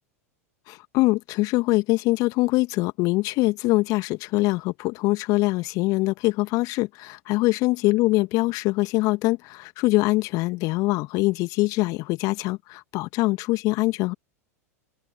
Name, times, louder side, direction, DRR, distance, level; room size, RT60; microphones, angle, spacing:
voice 1, 0.7-14.1, left 21 dB, 45° left, 2.1 m, -23 dB
open air
figure-of-eight pair, 85°, 8 cm